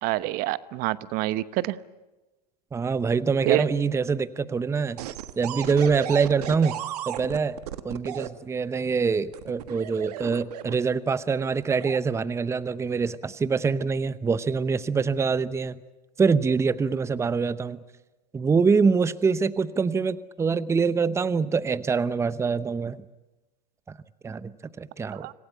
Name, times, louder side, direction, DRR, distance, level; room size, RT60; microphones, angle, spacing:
voice 1, 0.0-1.8 3.4-3.7 25.1-25.3, right 17 dB, 45° right, 16 dB, 1.0 m, -26 dB
voice 2, 2.7-5.0 5.4-6.7 7.1-7.6 7.8-15.8 16.2-17.8 18.3-23.0 23.9-24.0 24.2-24.5 24.8-25.3, right 5 dB, 15° right, 16 dB, 0.8 m, -24 dB
sound 1, 5.0-8.3 9.3-11.0 11.6-12.0, right 13 dB, 70° right, 1.4 m, -35 dB
26.5 x 17.5 x 10.0 m, 1.1 s
hypercardioid pair, 100°, 21 cm